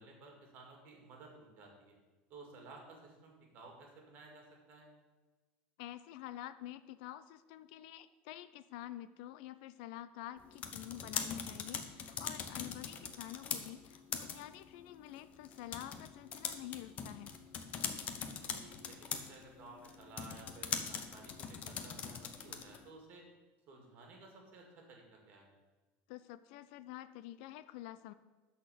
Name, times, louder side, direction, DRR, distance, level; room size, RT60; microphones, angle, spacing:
voice 1, 0.0-1.9 2.3-4.9 18.4-23.2 23.7-25.5, right 3 dB, 35° right, 1 dB, 2.2 m, -55 dB
voice 2, 5.8-17.3 26.1-28.1, left 13 dB, 60° left, 13 dB, 0.4 m, -48 dB
sound 1, 10.4-22.9, left 7 dB, 30° left, 0.7 m, -42 dB
12.0 x 4.2 x 6.8 m, 1.3 s
cardioid pair, 170°, 5 cm